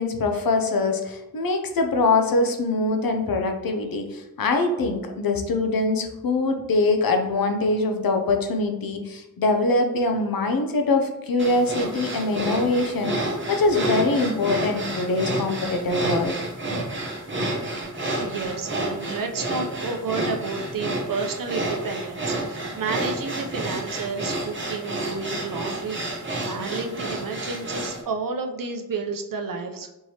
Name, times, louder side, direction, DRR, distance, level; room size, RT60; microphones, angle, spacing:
voice 1, 0.0-16.4, left 3 dB, 85° left, 5 dB, 0.6 m, -23 dB
sound 1, 11.4-28.0, right 1 dB, 35° right, 0.9 m, -29 dB
voice 2, 18.1-30.0, right 4 dB, 70° right, 4 dB, 0.6 m, -31 dB
4.5 x 3.1 x 2.8 m, 0.95 s
wide cardioid pair, 75°, 34 cm